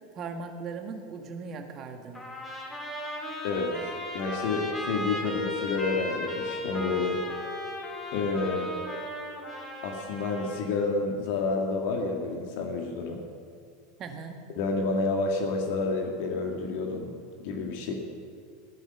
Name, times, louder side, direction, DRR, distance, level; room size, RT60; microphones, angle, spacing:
voice 1, 0.2-2.2 14.0-14.4, right 5 dB, 40° right, 5 dB, 1.9 m, -38 dB
Trumpet, 2.1-10.8, left 1 dB, 15° left, 4.2 m, -36 dB
voice 2, 3.4-7.2 8.1-8.7 9.8-13.2 14.6-17.1 17.4-17.9, left 3 dB, 60° left, 2 dB, 1.9 m, -29 dB
16.5 x 10.5 x 6.8 m, 2.2 s
figure-of-eight pair, 80°, 0 cm